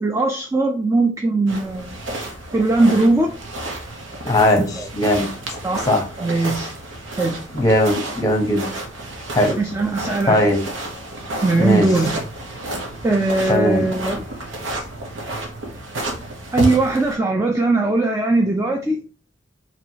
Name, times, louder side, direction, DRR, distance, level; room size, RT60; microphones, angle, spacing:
voice 1, 0.0-1.9 2.5-3.3 4.8-4.9 5.6-5.9 6.2-6.7 7.2-7.3 9.6-10.4 11.4-12.2 13.0-14.2 16.5-19.0, right 2 dB, 15° right, 2 dB, 0.4 m, -19 dB
sound 1, 1.5-17.2, right 1 dB, 85° right, 1.0 m, -31 dB
voice 2, 4.2-4.6 4.9-5.3 5.9-6.0 7.5-8.7 9.3-9.6 10.3-10.6 11.6-11.9 13.5-13.9, left 1 dB, 20° left, 5 dB, 0.8 m, -18 dB
4.6 x 3.0 x 2.7 m, 0.37 s
head